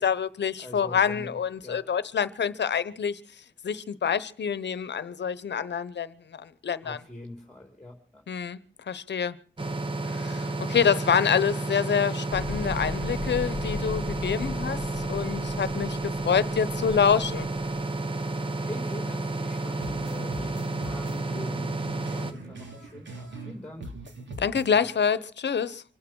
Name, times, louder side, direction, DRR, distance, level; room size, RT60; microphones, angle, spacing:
voice 1, 0.0-3.2 3.6-7.0 8.3-8.6 8.9-9.3 10.1-17.5 24.4-25.8, left 7 dB, 65° left, 1.0 m, -27 dB
voice 2, 0.6-1.8 6.8-8.2 18.5-23.9, left 1 dB, 5° left, 3.5 m, -43 dB
sound 1, 9.6-22.3, right 2 dB, 25° right, 1.3 m, -31 dB
sound 2, 12.3-17.9, left 5 dB, 35° left, 1.0 m, -39 dB
sound 3, 19.8-23.5 23.8-24.8, right 2 dB, 70° right, 3.2 m, -41 dB
25.5 x 8.7 x 6.3 m
wide cardioid pair, 95°, 19 cm